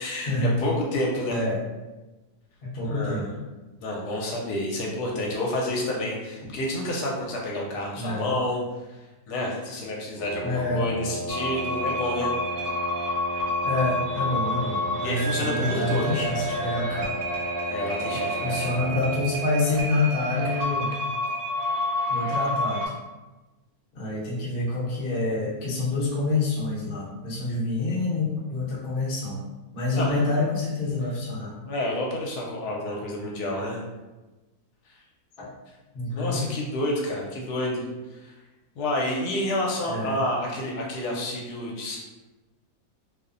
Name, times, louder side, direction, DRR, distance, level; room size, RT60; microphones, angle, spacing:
voice 1, 0.0-1.4 2.8-3.3 3.8-8.6 8.9-9.0 9.3-12.3 15.0-16.2 17.7-18.7 29.9-30.2 31.6-33.8 34.9-35.0 36.1-37.8 38.1-38.3 38.8-42.0, left 1 dB, 80° left, -2 dB, 1.1 m, -29 dB
voice 2, 2.7-3.2 8.0-8.3 10.4-10.8 13.6-17.1 18.4-20.9 22.1-22.8 23.9-29.4 29.7-31.5 35.4-35.5 35.9-36.5 39.9-40.2, left 2 dB, 50° left, -6 dB, 0.8 m, -27 dB
Wind instrument woodwind instrument, 10.1-19.5, right 1 dB, 5° left, 0.8 m, -34 dB
sound 1, 11.3-22.9, equal, 70° right, 1.1 m, -29 dB
2.8 x 2.0 x 2.5 m, 1.1 s
omnidirectional pair, 1.7 m